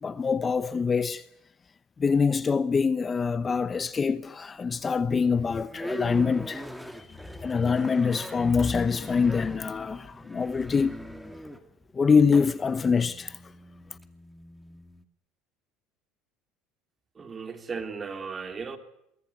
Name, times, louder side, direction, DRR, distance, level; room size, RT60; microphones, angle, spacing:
voice 1, 0.0-1.3 2.0-6.7 7.0-11.1 11.9-13.4, left 5 dB, 25° left, 0.9 m, -25 dB
sound 1, 3.3-4.0 4.5-15.0, equal, ahead, 2.4 m, -42 dB
voice 2, 17.2-18.8, right 5 dB, 25° right, 3.4 m, -36 dB
23.5 x 19.5 x 9.9 m
supercardioid pair, 110°, 0 cm